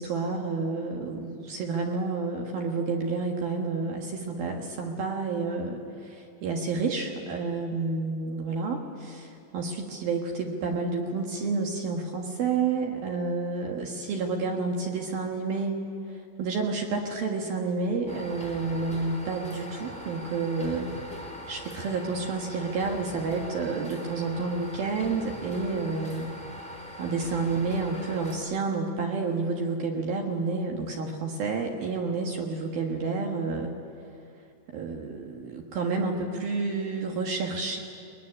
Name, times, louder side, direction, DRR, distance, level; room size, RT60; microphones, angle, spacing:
voice 1, 0.0-15.8 16.4-20.9 21.5-26.3 27.0-33.7 34.7-37.8, right 4 dB, 65° right, 1 dB, 2.6 m, -30 dB
sound 1, 18.1-28.4, equal, ahead, 3.0 m, -41 dB
22.0 x 20.5 x 9.9 m, 2.5 s
omnidirectional pair, 5.9 m